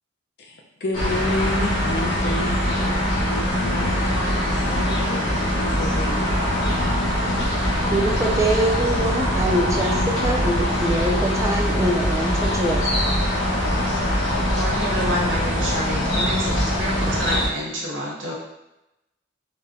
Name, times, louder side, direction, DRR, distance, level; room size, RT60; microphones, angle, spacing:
voice 1, 0.4-6.4, left 1 dB, 55° left, 1 dB, 0.5 m, -31 dB
sound 1, 0.9-17.5, equal, 75° left, 1.0 m, -22 dB
voice 2, 7.9-13.0, right 1 dB, 15° right, 1 dB, 0.3 m, -24 dB
voice 3, 14.5-18.3, equal, 75° right, -3 dB, 0.9 m, -28 dB
3.9 x 2.1 x 2.5 m, 0.91 s
head